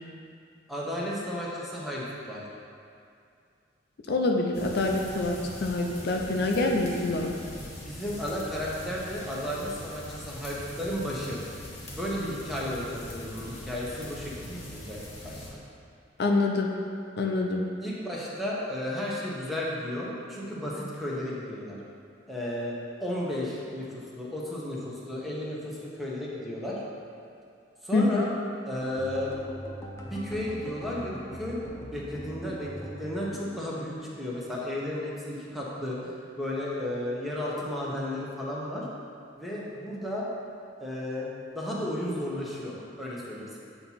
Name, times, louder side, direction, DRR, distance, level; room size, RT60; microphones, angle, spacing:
voice 1, 0.7-2.4 7.8-11.4 11.9-15.6 17.8-21.8 22.3-22.8 23.0-26.8 27.8-28.3 28.7-29.3 30.0-31.6 31.8-38.9 39.4-40.3 40.8-43.6, left 1 dB, ahead, -6 dB, 1.0 m, -33 dB
voice 2, 4.1-7.3 16.2-16.7 17.2-17.6 27.9-28.3, left 2 dB, 60° left, 1 dB, 0.5 m, -26 dB
sound 1, 4.5-15.5, left 1 dB, 35° left, 1.3 m, -42 dB
sound 2, 28.7-34.9 35.2-36.2 36.5-36.8 37.2-37.4, equal, 15° left, 0.6 m, -42 dB
7.7 x 2.9 x 5.6 m, 2.4 s
head